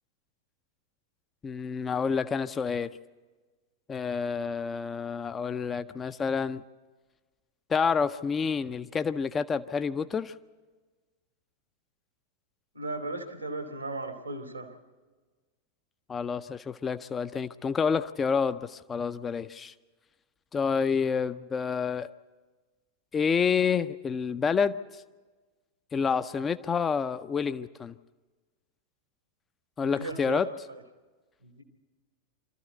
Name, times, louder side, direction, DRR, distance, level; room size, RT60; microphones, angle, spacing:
voice 1, 1.4-2.9 3.9-6.6 7.7-10.3 16.1-19.7 20.5-22.1 23.1-25.0 25.9-27.9 29.8-30.5, left 6 dB, 20° left, 12 dB, 0.5 m, -28 dB
voice 2, 12.7-14.8 29.8-30.8 31.4-31.6, right 2 dB, 85° right, 5 dB, 2.2 m, -37 dB
25.5 x 13.5 x 8.0 m, 1.3 s
figure-of-eight pair, 90°, 0 cm